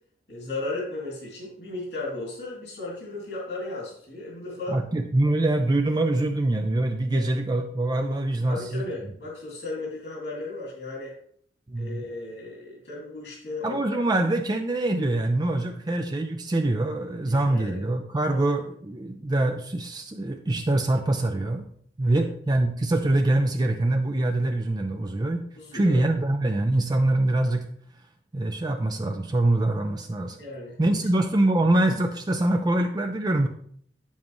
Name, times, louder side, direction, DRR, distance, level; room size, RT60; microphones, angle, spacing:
voice 1, 0.3-4.8 7.1-7.2 8.5-11.1 11.8-14.0 17.3-17.8 18.3-18.4 22.1-22.3 25.6-26.0 30.4-30.8, left 2 dB, 80° left, -4 dB, 2.4 m, -35 dB
voice 2, 4.7-8.9 11.7-12.1 13.6-21.6 22.0-25.4 25.7-27.7 28.3-30.4 30.8-33.5, right 2 dB, 25° right, 5 dB, 0.4 m, -24 dB
8.5 x 7.3 x 3.1 m, 0.63 s
head